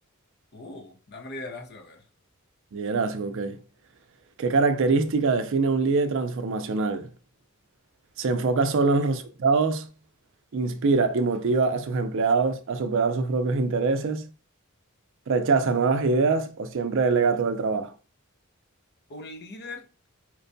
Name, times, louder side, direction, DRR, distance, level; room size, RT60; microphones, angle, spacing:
voice 1, 0.5-2.0 8.8-8.9 19.1-20.1, left 2 dB, 50° left, 0.6 m, -40 dB
voice 2, 2.7-3.6 4.4-7.1 8.2-9.9 10.5-14.3 15.3-17.9, right 4 dB, 60° right, 0.4 m, -24 dB
4.5 x 2.2 x 2.6 m
head